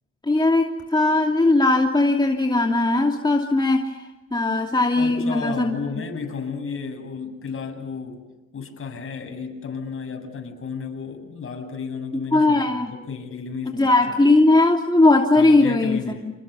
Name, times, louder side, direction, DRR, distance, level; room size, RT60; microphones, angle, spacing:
voice 1, 0.3-3.9 4.3-5.7 12.3-12.9 13.7-16.3, left 2 dB, 15° left, 1 dB, 2.7 m, -19 dB
voice 2, 5.0-8.2 8.5-14.2 15.4-16.3, left 5 dB, 45° left, 4 dB, 7.8 m, -33 dB
29.5 x 27.0 x 7.1 m, 1.1 s
cardioid pair, 90°, 30 cm